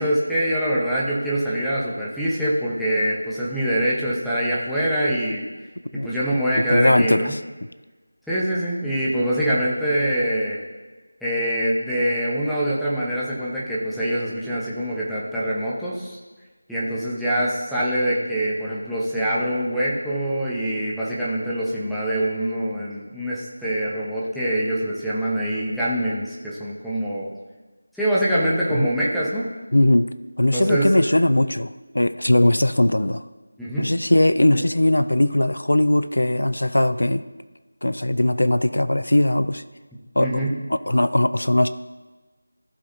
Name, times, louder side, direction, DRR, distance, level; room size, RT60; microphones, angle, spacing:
voice 1, 0.0-5.4 6.0-7.3 8.3-10.6 11.2-16.2 16.7-27.3 27.9-29.4 30.5-31.0 33.6-33.9 40.2-40.5, right 1 dB, ahead, -10 dB, 1.0 m, -24 dB
voice 2, 6.7-7.4 28.7-28.9 29.7-30.1 30.4-33.2 33.8-37.2 37.8-39.6 40.2-40.4 40.7-41.7, left 1 dB, 75° left, 13 dB, 0.5 m, -19 dB
15.0 x 6.1 x 2.7 m, 1.3 s
figure-of-eight pair, 165°, 0 cm